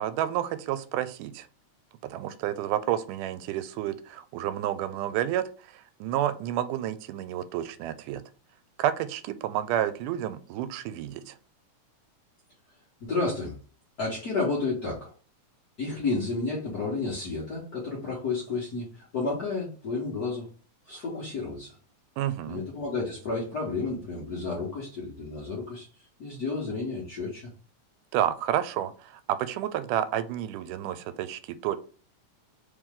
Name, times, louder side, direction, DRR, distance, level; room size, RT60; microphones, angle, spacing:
voice 1, 0.0-1.5 2.1-5.4 5.7-8.2 8.8-11.4 22.2-22.6 28.1-31.8, right 11 dB, 90° right, 13 dB, 2.1 m, -30 dB
voice 2, 13.0-13.6 14.0-15.1 15.8-20.5 20.8-21.7 22.4-27.5, left 3 dB, 85° left, -5 dB, 0.8 m, -31 dB
4.6 x 3.1 x 3.6 m, 0.38 s
omnidirectional pair, 3.6 m